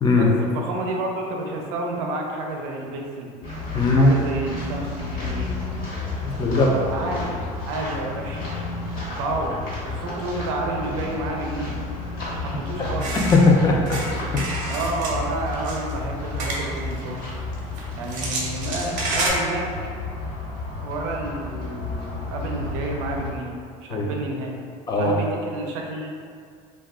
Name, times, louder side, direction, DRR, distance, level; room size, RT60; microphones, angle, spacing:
voice 1, 0.2-3.3 4.0-5.5 6.6-8.4 9.2-9.6 9.8-11.8 12.3-13.2 14.6-17.3 17.9-19.7 20.8-24.6 25.0-26.1, right 2 dB, 90° right, 1 dB, 0.5 m, -30 dB
sound 1, 3.4-23.3, left 3 dB, 60° left, 1.2 m, -32 dB
voice 2, 3.7-4.1 6.2-6.7 13.3-14.0 14.3-14.5 23.9-24.1 24.9-25.2, left 3 dB, 25° left, -1 dB, 0.5 m, -18 dB
sound 2, 13.0-13.5 13.9-15.2 15.5-15.9 16.4-16.9 17.5-19.3, right 2 dB, 55° right, 0.7 m, -29 dB
2.3 x 2.2 x 3.5 m, 2.2 s
supercardioid pair, 110°, 16 cm